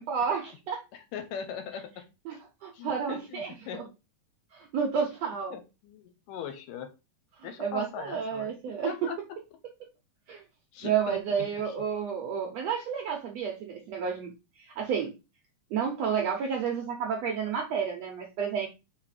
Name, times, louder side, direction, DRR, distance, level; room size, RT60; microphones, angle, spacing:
voice 1, 0.0-0.8 2.3-2.4 2.6-3.8 4.5-5.5 7.4-9.1 10.3-10.4 10.8-14.3 14.6-15.1 15.7-18.7, right 7 dB, 70° right, 2 dB, 1.6 m, -31 dB
voice 2, 0.9-2.0 2.7-3.8 5.5-6.9 7.4-9.2 10.7-11.7, left 7 dB, 75° left, 8 dB, 2.4 m, -40 dB
5.2 x 4.1 x 4.8 m, 0.28 s
omnidirectional pair, 4.0 m